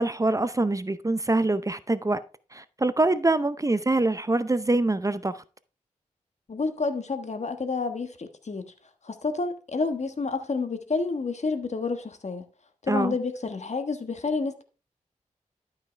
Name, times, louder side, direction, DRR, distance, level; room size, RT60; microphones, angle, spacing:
voice 1, 0.0-2.2 2.5-5.4 12.9-13.2, right 2 dB, 25° right, 0.6 m, -24 dB
voice 2, 6.5-8.7 9.0-12.4 12.8-14.6, left 4 dB, 55° left, 1.4 m, -29 dB
12.0 x 5.7 x 3.3 m
cardioid pair, 50°, 14 cm